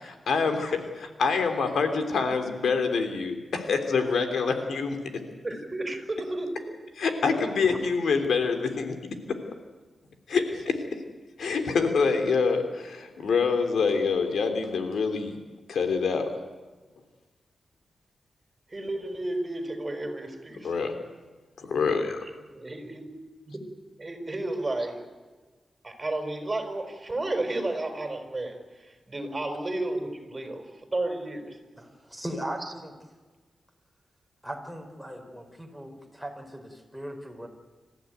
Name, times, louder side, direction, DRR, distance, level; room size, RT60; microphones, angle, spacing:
voice 1, 0.0-5.0 6.9-9.0 10.3-10.8 11.4-15.3 15.7-16.3 20.6-21.0 21.6-22.2, left 5 dB, 90° left, 6 dB, 3.2 m, -26 dB
voice 2, 5.4-6.5 7.3-7.8 18.7-20.7 22.5-23.1 23.4-23.6 24.0-25.0 25.8-30.7 30.9-31.6 32.6-32.7, right 2 dB, 25° right, 5 dB, 5.3 m, -32 dB
voice 3, 31.8-32.9 34.4-37.5, right 1 dB, ahead, 4 dB, 5.0 m, -38 dB
27.5 x 14.5 x 9.5 m, 1.3 s
wide cardioid pair, 95°, 0 cm